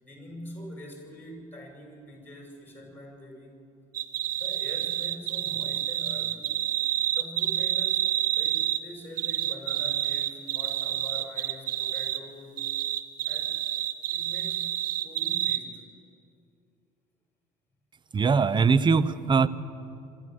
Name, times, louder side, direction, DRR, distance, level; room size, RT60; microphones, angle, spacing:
voice 1, 0.0-3.7 4.3-6.5 7.1-12.6 13.2-13.8 14.1-14.7 15.0-15.8, left 1 dB, 10° left, 1 dB, 6.6 m, -44 dB
sound 1, 3.9-8.8 9.2-12.2 12.6-15.6, right 12 dB, 50° right, 1.0 m, -28 dB
voice 2, 18.1-19.5, right 5 dB, 25° right, 15 dB, 0.8 m, -21 dB
25.0 x 13.5 x 7.8 m, 2.5 s
figure-of-eight pair, 55°, 18 cm